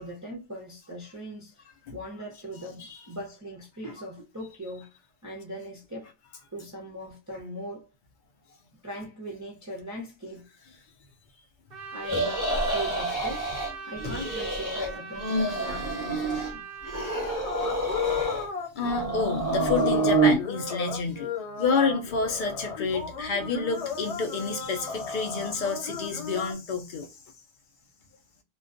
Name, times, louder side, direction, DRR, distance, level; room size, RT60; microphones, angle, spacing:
voice 1, 0.0-1.6 1.9-4.9 5.2-6.1 6.5-7.9 8.8-10.5 11.9-13.5 13.9-16.7, equal, 25° right, 0.5 m, -39 dB
Trumpet, 11.7-17.2, right 5 dB, 65° right, 0.7 m, -41 dB
sound 1, 12.0-13.7 14.0-14.9 15.1-16.5 16.9-18.5 18.8-20.4, right 2 dB, 20° left, 0.8 m, -27 dB
sound 2, 17.3-26.5, left 6 dB, 80° left, 1.1 m, -35 dB
voice 2, 18.7-21.3 21.6-27.1, left 4 dB, 60° left, 0.6 m, -29 dB
2.3 x 2.2 x 2.4 m
omnidirectional pair, 1.1 m